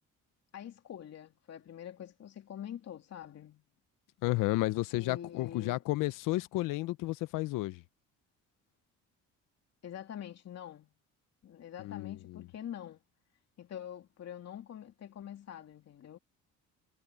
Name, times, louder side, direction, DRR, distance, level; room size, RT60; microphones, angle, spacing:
voice 1, 0.5-3.6 4.9-5.8 9.8-10.9 11.4-13.0 13.6-16.2, left 10 dB, 55° left, 2.8 m, -45 dB
voice 2, 4.2-7.8 11.8-12.1, left 19 dB, 85° left, 0.9 m, -32 dB
cardioid pair, 90°, 32 cm